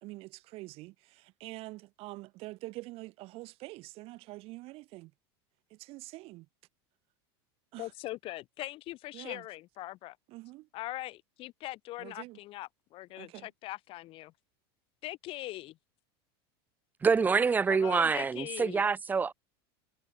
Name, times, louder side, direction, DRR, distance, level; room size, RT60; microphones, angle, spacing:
voice 1, 0.0-5.1 5.7-6.5 7.7-7.9 9.1-9.4 10.3-10.7 12.0-12.4 13.2-13.5, right 20 dB, 50° right, 1.2 m, -45 dB
voice 2, 7.8-10.2 10.7-14.3 15.0-15.8 17.7-18.8, left 17 dB, 45° left, 1.6 m, -41 dB
voice 3, 17.0-19.3, right 5 dB, 15° right, 0.5 m, -26 dB
supercardioid pair, 135°, 13 cm